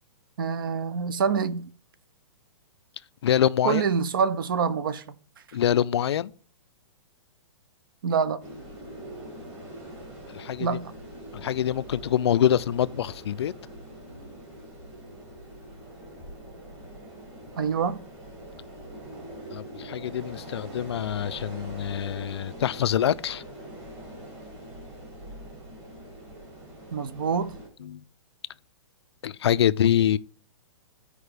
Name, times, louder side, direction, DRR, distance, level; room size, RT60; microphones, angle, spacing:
voice 1, 0.4-1.7 3.6-5.1 8.0-8.5 10.6-10.9 17.6-18.0 26.9-27.6, right 6 dB, 45° right, 0.6 m, -26 dB
voice 2, 3.2-3.8 5.5-6.3 10.3-10.8 11.3-13.5 19.5-23.4 27.8-28.0 29.2-30.2, left 10 dB, 55° left, 0.4 m, -25 dB
sound 1, 8.4-27.7, right 1 dB, 20° right, 2.2 m, -43 dB
14.5 x 4.9 x 3.3 m
hypercardioid pair, 180°, 16 cm